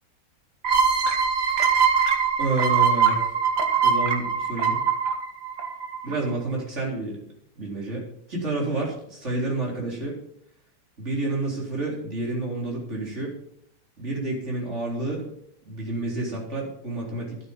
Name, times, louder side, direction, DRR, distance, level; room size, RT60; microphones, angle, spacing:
sound 1, 0.6-6.1, right 6 dB, 70° right, 2.3 m, -22 dB
voice 1, 2.4-3.2 3.8-4.8 6.0-7.2 7.6-8.0 8.3-10.2 11.0-13.3 14.0-15.3 15.7-17.4, right 2 dB, 40° right, -2 dB, 4.2 m, -29 dB
12.5 x 9.0 x 5.4 m, 0.69 s
omnidirectional pair, 1.9 m